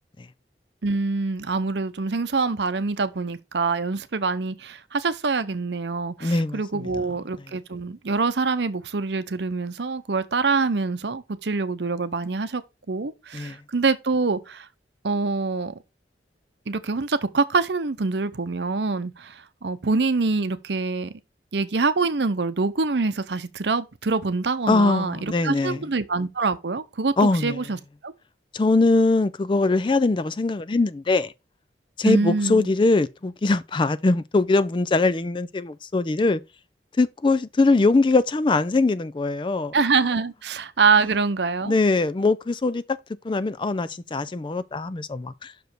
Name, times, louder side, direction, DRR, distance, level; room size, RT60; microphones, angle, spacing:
voice 1, 0.8-12.6 12.9-14.7 15.0-15.8 16.7-21.1 21.5-27.8 28.0-28.1 32.0-32.7 39.7-41.7, right 4 dB, 75° right, 0.7 m, -25 dB
voice 2, 6.2-6.8 13.3-13.6 24.7-25.8 27.2-27.6 28.5-31.3 32.0-36.4 37.0-39.7 41.6-42.8 43.2-45.7, left 3 dB, 25° left, 0.4 m, -22 dB
6.2 x 5.1 x 4.5 m
head